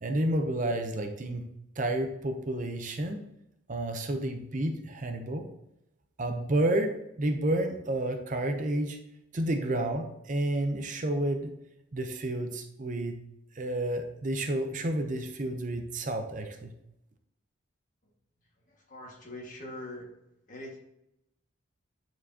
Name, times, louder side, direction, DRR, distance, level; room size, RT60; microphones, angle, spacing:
voice 1, 0.0-1.5 1.8-3.2 3.7-5.5 6.2-9.0 9.3-11.5 11.9-13.2 13.5-16.7, right 1 dB, 40° right, 5 dB, 0.5 m, -30 dB
voice 2, 18.4-20.1 20.5-20.8, left 1 dB, 40° left, -2 dB, 1.6 m, -43 dB
8.8 x 4.5 x 2.7 m, 0.84 s
head